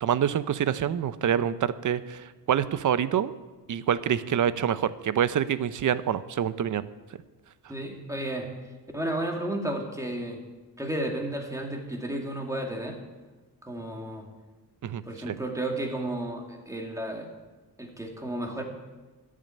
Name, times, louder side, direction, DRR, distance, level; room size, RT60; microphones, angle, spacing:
voice 1, 0.0-3.3 3.7-6.8 14.8-15.3, right 9 dB, 50° right, 14 dB, 0.7 m, -26 dB
voice 2, 7.7-8.5 8.9-10.4 10.8-13.0 13.6-14.3 15.0-17.3 17.8-18.6, right 1 dB, 10° right, 1 dB, 2.4 m, -32 dB
13.5 x 7.5 x 9.8 m, 1.2 s
cardioid pair, 130°, 39 cm